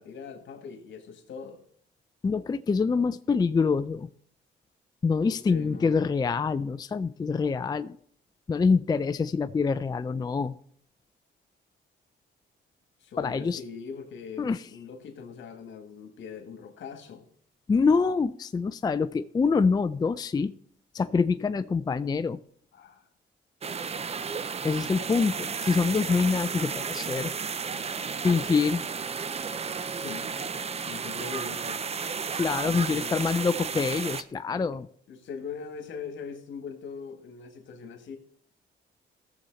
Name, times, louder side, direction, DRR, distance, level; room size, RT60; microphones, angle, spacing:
voice 1, 0.0-1.6 5.2-6.1 13.0-17.2 22.7-23.1 29.9-31.8 32.6-33.1 34.5-34.6 35.1-38.2, left 5 dB, 70° left, 1.8 m, -41 dB
voice 2, 2.2-4.1 5.0-8.0 8.5-10.6 13.2-13.6 14.4-14.7 17.7-20.6 20.9-22.4 24.6-27.3 28.2-28.8 32.3-34.9, left 5 dB, 20° left, 0.4 m, -25 dB
sound 1, 23.6-34.2, right 5 dB, 30° right, 0.6 m, -33 dB
15.5 x 7.0 x 4.0 m
cardioid pair, 90°, 20 cm